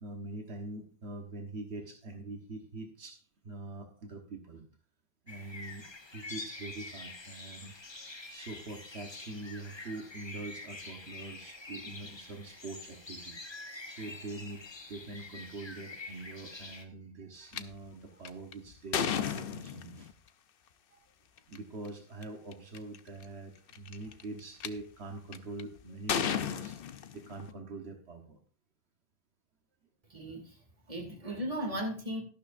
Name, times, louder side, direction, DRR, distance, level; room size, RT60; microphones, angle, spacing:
voice 1, 0.0-3.2 3.4-4.7 5.2-5.8 6.1-7.7 8.3-14.6 14.9-20.1 20.9-21.0 21.5-26.8 27.1-28.4, right 2 dB, 80° right, 3 dB, 1.5 m, -44 dB
sound 1, 5.3-16.8, left 3 dB, 25° left, 1.0 m, -46 dB
sound 2, 17.5-17.6 18.2-20.1 21.4-21.6 22.2-22.3 22.5-23.0 23.7-24.7 25.3-25.6 26.1-27.5, left 8 dB, 65° left, 0.8 m, -33 dB
voice 2, 30.1-30.5 30.9-32.2, equal, 35° right, 1 dB, 2.6 m, -36 dB
12.5 x 11.5 x 2.6 m, 0.38 s
omnidirectional pair, 1.1 m